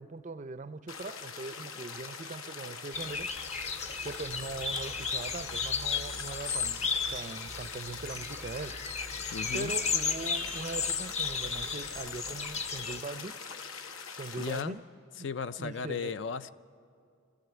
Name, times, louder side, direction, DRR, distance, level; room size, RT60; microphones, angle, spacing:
voice 1, 0.0-3.3 4.0-8.8 9.5-13.4 14.2-14.8 15.2-15.3 15.6-16.2, right 3 dB, 35° right, 0.4 m, -41 dB
sound 1, 0.9-14.6, left 5 dB, 80° left, 1.0 m, -43 dB
sound 2, 2.9-13.0, left 5 dB, 30° left, 0.7 m, -34 dB
voice 2, 9.3-9.8 14.4-14.8 15.2-16.5, left 5 dB, 60° left, 0.4 m, -35 dB
23.0 x 14.5 x 8.0 m
head